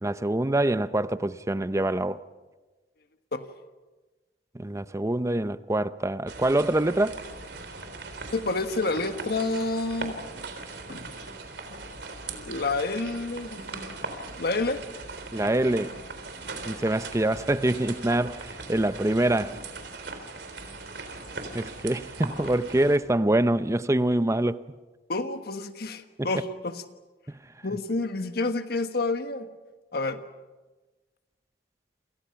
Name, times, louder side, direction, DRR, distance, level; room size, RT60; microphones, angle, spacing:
voice 1, 0.0-2.2 4.5-7.2 15.3-15.9 16.6-19.6 21.5-24.6 26.2-26.3, right 1 dB, 15° right, 0.7 m, -25 dB
sound 1, 6.3-23.0, right 3 dB, 70° right, 3.7 m, -39 dB
voice 2, 8.3-10.1 10.9-11.1 12.5-14.0 14.4-14.8 25.1-26.8 27.6-29.5 29.9-30.2, left 3 dB, 60° left, 1.4 m, -29 dB
28.5 x 27.5 x 5.9 m
head